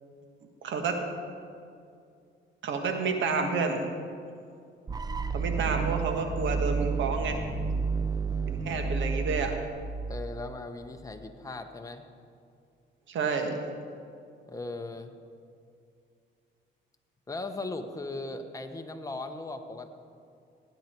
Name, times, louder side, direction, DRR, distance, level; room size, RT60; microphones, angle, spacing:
voice 1, 0.6-1.0 2.6-3.9 5.3-7.4 8.5-9.5 13.1-13.5, right 4 dB, 70° right, 5 dB, 1.6 m, -29 dB
sound 1, 4.9-10.8, right 5 dB, 20° right, 0.6 m, -31 dB
voice 2, 5.6-6.1 10.1-12.0 14.5-15.1 17.3-19.9, left 2 dB, 15° left, 5 dB, 1.1 m, -38 dB
17.5 x 9.6 x 4.5 m, 2.4 s
cardioid pair, 90°, 20 cm